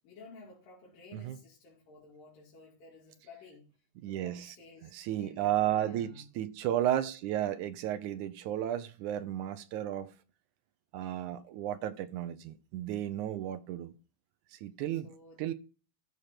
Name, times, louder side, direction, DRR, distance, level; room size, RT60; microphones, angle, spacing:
voice 1, 0.0-3.7 4.0-4.9 5.2-6.2 13.3-13.6 14.9-15.4, left 3 dB, 70° left, 4.3 m, -54 dB
voice 2, 4.0-4.6 4.8-10.1 10.9-13.9 14.5-15.1 15.4-15.5, right 12 dB, 75° right, 1.9 m, -33 dB
14.0 x 4.9 x 5.8 m
omnidirectional pair, 4.1 m